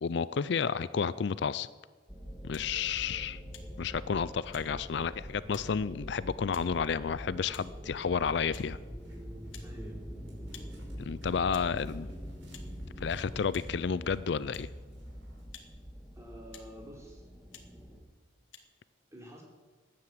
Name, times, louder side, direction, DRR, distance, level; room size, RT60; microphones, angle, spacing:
voice 1, 0.0-1.7 2.4-3.4 3.8-8.8 11.0-12.1 13.0-14.7, left 6 dB, 60° left, 17 dB, 0.4 m, -31 dB
sound 1, 2.1-18.0, equal, ahead, 1.8 m, -44 dB
sound 2, 2.5-2.7 3.5-3.7 4.5-4.7 5.5-5.7 6.5-6.7 7.5-7.7 8.5-8.7 9.5-9.7 10.5-10.7 11.5-11.7 12.5-12.7 13.5-13.7 14.5-14.7 15.5-15.7 16.5-16.7 17.5-17.7 18.5-18.6, left 8 dB, 80° left, 1.7 m, -51 dB
sound 3, 8.4-15.4, right 1 dB, 85° right, 5.0 m, -63 dB
voice 2, 9.6-10.0 16.1-17.2 19.1-19.4, equal, 15° right, -1 dB, 3.4 m, -48 dB
16.0 x 10.5 x 7.8 m, 1.4 s
head